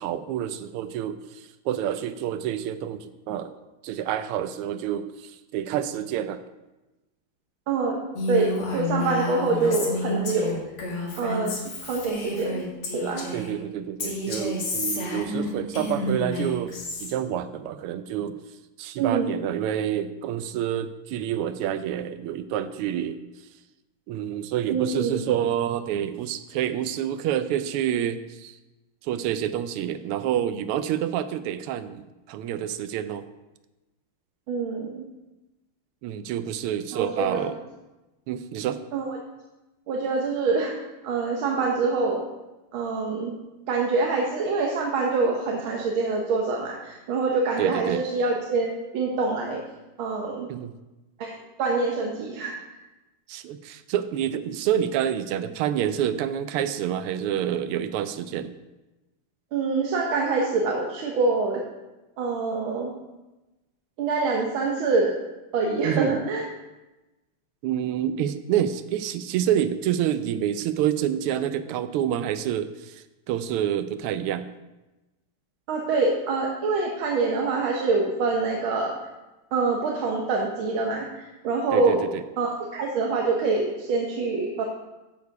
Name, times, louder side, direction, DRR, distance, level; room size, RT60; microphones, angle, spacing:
voice 1, 0.0-3.5 3.8-6.4 13.3-16.7 17.0-18.4 18.8-23.2 24.1-28.6 29.0-33.2 36.0-37.5 38.3-38.8 47.6-48.0 50.5-50.7 53.3-58.5 65.8-66.2 67.6-74.5 81.7-82.2, right 10 dB, 85° right, 11 dB, 1.5 m, -28 dB
voice 2, 7.7-10.6 11.2-12.7 12.9-13.3 19.0-19.4 24.7-25.2 34.5-35.0 36.9-37.4 38.9-39.2 39.9-40.7 41.0-42.2 42.7-43.4 43.7-49.6 50.0-50.5 51.2-51.3 51.6-52.6 59.5-61.6 62.2-62.9 64.0-65.1 65.5-66.4 75.7-78.9 79.5-82.0 82.4-84.6, right 3 dB, 70° right, 0 dB, 1.7 m, -25 dB
Female speech woman speaking, 8.1-13.5 14.0-17.1, left 2 dB, 80° left, 2.7 m, -30 dB
13.5 x 4.7 x 4.7 m, 1.1 s
omnidirectional pair, 2.4 m